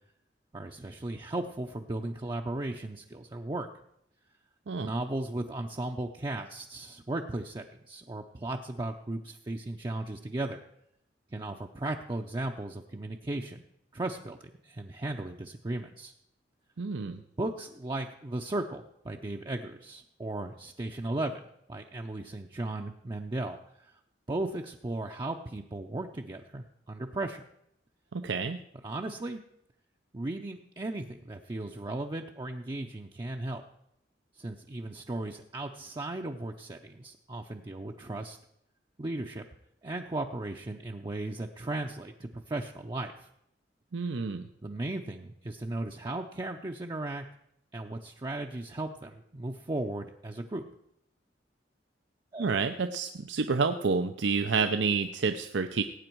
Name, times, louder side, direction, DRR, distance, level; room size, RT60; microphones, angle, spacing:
voice 1, 0.5-3.7 4.8-10.6 11.3-13.6 13.9-16.1 17.4-21.4 21.7-23.9 24.3-27.4 28.4-28.5 28.8-29.4 30.1-33.6 34.4-38.4 39.0-39.5 39.8-43.3 44.0-44.1 44.6-47.3 47.7-50.6 52.3-52.5, right 2 dB, 25° right, 2 dB, 0.6 m, -36 dB
voice 2, 16.8-17.2 28.1-28.6 43.9-44.5 52.4-55.8, right 4 dB, 85° right, 8 dB, 0.6 m, -29 dB
18.0 x 8.7 x 4.6 m, 0.77 s
head